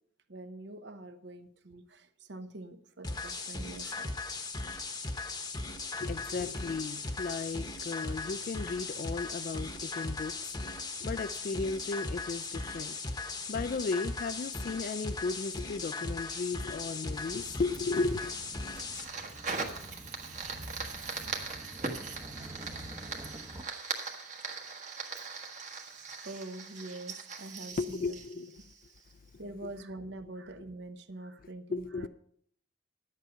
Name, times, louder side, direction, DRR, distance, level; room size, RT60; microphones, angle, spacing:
voice 1, 0.3-4.2 26.2-28.2 29.4-32.1, right 2 dB, 60° right, 0.9 m, -44 dB
sound 1, 3.0-19.0, left 3 dB, 20° left, 0.9 m, -38 dB
voice 2, 6.0-18.3 27.7-28.6 31.7-32.1, left 4 dB, 45° left, 0.3 m, -35 dB
sound 2, 17.1-23.6, right 1 dB, 20° right, 0.9 m, -48 dB
Fire, 17.7-29.1, right 4 dB, 40° right, 1.4 m, -40 dB
10.5 x 8.2 x 5.7 m
head